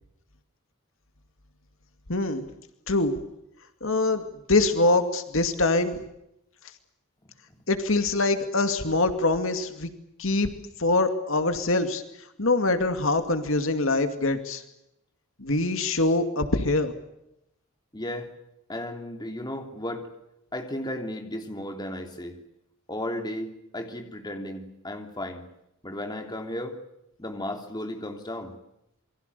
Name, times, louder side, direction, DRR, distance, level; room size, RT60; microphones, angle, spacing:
voice 1, 2.1-2.4 2.9-3.1 3.8-4.2 4.5-6.0 7.7-9.9 10.2-10.5 10.8-12.0 12.4-14.6 15.4-16.9, left 2 dB, 65° left, 8 dB, 2.4 m, -24 dB
voice 2, 17.9-18.3 18.7-20.1 20.5-22.4 22.9-25.5 25.8-26.8 27.2-28.6, left 1 dB, 20° left, 5 dB, 3.3 m, -34 dB
28.0 x 23.5 x 6.9 m, 0.84 s
head